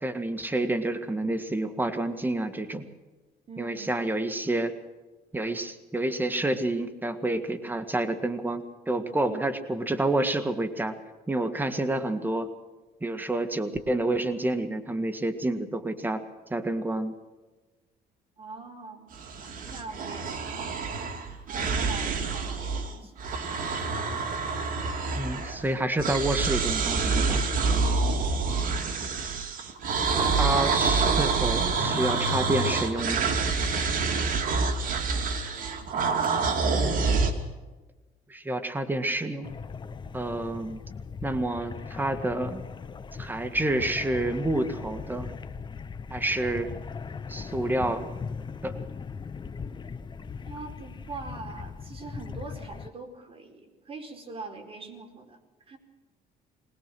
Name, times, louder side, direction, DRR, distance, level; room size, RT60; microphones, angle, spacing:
voice 1, 0.0-2.9 3.6-4.7 5.3-10.9 11.3-12.5 13.0-16.2 16.5-17.1 25.2-27.4 30.4-33.3 38.3-39.5 40.1-40.8 41.2-42.6 43.2-45.3 46.1-46.7 47.3-48.1 48.6-48.8, right 1 dB, 10° right, 8 dB, 1.9 m, -28 dB
voice 2, 3.5-4.1 18.4-20.8 21.5-23.2 27.3-28.9 34.9-36.6 50.4-55.4 55.7-55.8, right 3 dB, 35° right, 3 dB, 4.5 m, -43 dB
sound 1, 19.1-22.9 23.2-25.7 26.0-37.3, right 4 dB, 55° right, 2.6 m, -27 dB
sound 2, 39.4-52.9, left 5 dB, 25° left, 0.8 m, -39 dB
21.5 x 19.5 x 6.2 m, 1.2 s
cardioid pair, 110°, 17 cm